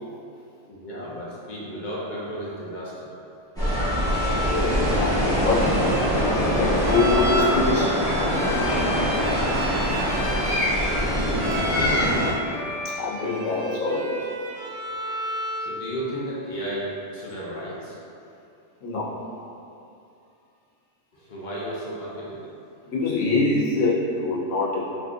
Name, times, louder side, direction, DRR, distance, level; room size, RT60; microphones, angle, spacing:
voice 1, 0.7-3.1 9.9-10.6 15.6-18.0 21.1-22.4, right 1 dB, 55° left, -7 dB, 0.6 m, -34 dB
sound 1, 3.6-12.3, equal, 5° left, 0.7 m, -23 dB
Bowed string instrument, 3.6-15.7, equal, 60° right, 0.8 m, -32 dB
voice 2, 4.2-6.0 6.3-8.9 11.7-12.3 13.0-14.3 18.8-19.1 22.9-24.9, left 3 dB, 85° left, -7 dB, 1.1 m, -25 dB
3.6 x 2.4 x 2.4 m, 2.6 s
omnidirectional pair, 1.3 m